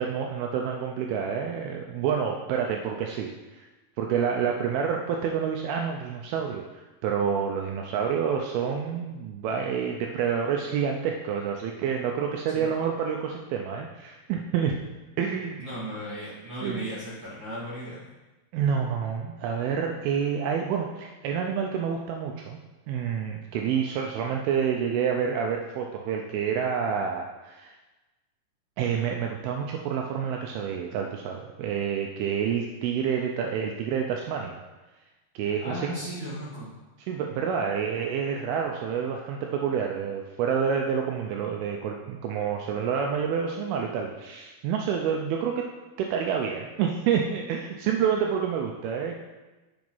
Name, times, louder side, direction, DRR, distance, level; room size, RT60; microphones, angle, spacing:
voice 1, 0.0-3.7 4.0-14.8 15.2-15.6 16.6-16.9 18.5-22.6 22.9-27.7 28.8-34.6 35.4-35.9 37.0-45.7 46.0-49.2, right 7 dB, 80° right, 2 dB, 2.4 m, -28 dB
voice 2, 15.6-18.0 35.4-36.7, equal, 35° right, -9 dB, 2.2 m, -36 dB
7.8 x 5.1 x 5.4 m, 1.1 s
omnidirectional pair, 4.6 m